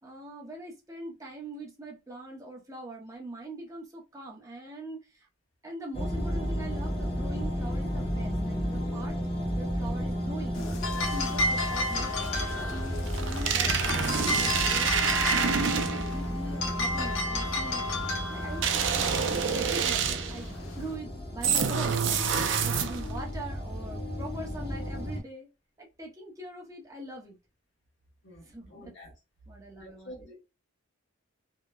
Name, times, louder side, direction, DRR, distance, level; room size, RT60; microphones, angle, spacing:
voice 1, 0.0-5.3 5.6-10.6 10.9-25.5 25.8-27.4 28.4-28.9 29.5-30.3, right 1 dB, 15° right, 0.7 m, -43 dB
sound 1, 5.9-25.2, equal, 30° left, 0.8 m, -33 dB
sound 2, 10.5-20.9, left 2 dB, 70° left, 0.7 m, -33 dB
sound 3, 13.1-16.2 18.6-20.4 21.4-23.2, right 7 dB, 60° right, 0.4 m, -27 dB
voice 2, 28.2-29.1 29.8-30.3, equal, 55° left, 1.3 m, -48 dB
2.8 x 2.1 x 2.3 m
head